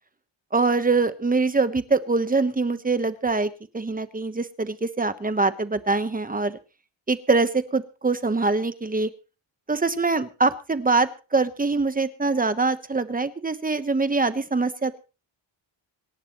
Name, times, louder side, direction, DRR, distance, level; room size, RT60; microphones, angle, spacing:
voice 1, 0.5-6.6 7.1-9.1 9.7-15.0, right 3 dB, 15° right, 11 dB, 1.2 m, -24 dB
26.5 x 11.5 x 3.1 m, 0.34 s
wide cardioid pair, 140°, 48 cm